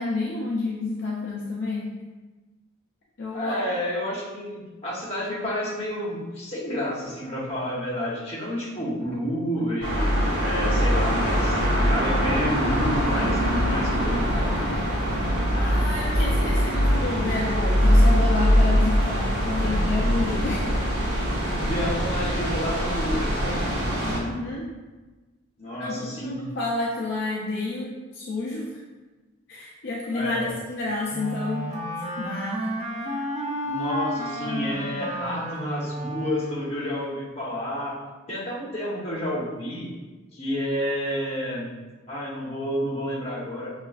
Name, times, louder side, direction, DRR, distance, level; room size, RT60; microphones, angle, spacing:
voice 1, 0.0-1.9 3.2-3.6 15.5-20.8 24.0-24.8 25.8-28.8 29.5-31.7 32.2-32.7, left 3 dB, 55° left, -4 dB, 0.4 m, -30 dB
voice 2, 3.3-10.1 10.4-14.5 19.6-19.8 21.6-24.0 25.6-26.4 30.1-30.5 33.6-38.0 38.3-39.9 40.3-41.7 42.1-43.7, equal, 30° left, -6 dB, 0.9 m, -30 dB
sound 1, 9.8-24.2, equal, 50° right, 1.0 m, -22 dB
Wind instrument woodwind instrument, 31.1-36.9, equal, 30° right, 0.6 m, -31 dB
5.5 x 2.4 x 2.4 m, 1.2 s
head